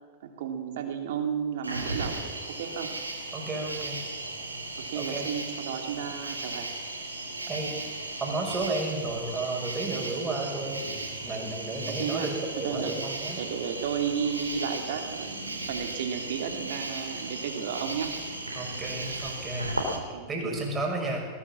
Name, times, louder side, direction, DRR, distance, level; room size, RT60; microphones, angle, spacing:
voice 1, 0.4-2.9 4.9-6.7 11.9-12.3 12.6-13.1 13.4-15.4 15.7-18.1 20.1-20.5, right 7 dB, 55° right, 5 dB, 3.0 m, -33 dB
Cricket, 1.6-20.0, right 2 dB, 80° right, 3.3 m, -36 dB
voice 2, 3.3-4.0 5.0-5.3 7.5-7.7 8.2-10.8 11.2-12.3 12.6-13.4 18.6-19.7 20.3-21.2, right 2 dB, 20° right, 0 dB, 6.4 m, -32 dB
20.0 x 18.0 x 7.4 m, 1.5 s
figure-of-eight pair, 90°, 0 cm